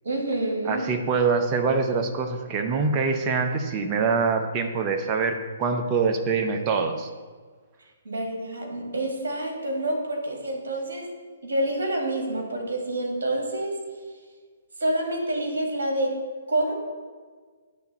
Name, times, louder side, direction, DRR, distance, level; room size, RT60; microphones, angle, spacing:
voice 1, 0.0-0.9 8.0-11.1 11.4-13.8 14.8-16.2 16.5-16.7, right 1 dB, 65° right, 1 dB, 1.9 m, -27 dB
voice 2, 0.7-7.1, right 4 dB, 25° right, 5 dB, 0.7 m, -24 dB
9.3 x 3.5 x 6.6 m, 1.5 s
figure-of-eight pair, 130°, 0 cm